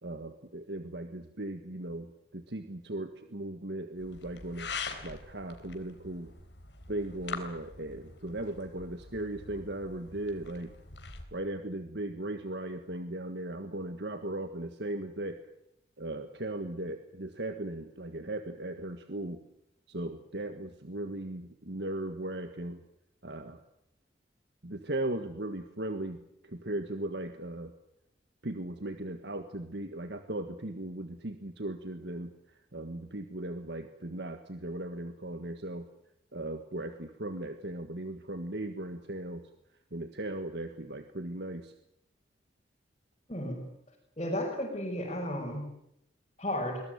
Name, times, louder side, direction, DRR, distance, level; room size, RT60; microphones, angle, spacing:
voice 1, 0.0-6.3 6.9-10.7 11.3-15.4 16.0-19.4 19.9-22.8 23.2-23.6 24.6-27.7 28.4-32.3 32.7-35.9 36.3-39.4 39.9-41.7, right 1 dB, 65° right, 8 dB, 1.7 m, -37 dB
sound 1, 4.0-11.2, left 5 dB, 75° left, 3.8 m, -44 dB
voice 2, 43.3-43.6 44.2-45.7 46.4-46.8, left 1 dB, 30° left, -3 dB, 6.0 m, -33 dB
23.0 x 20.5 x 9.3 m, 0.77 s
head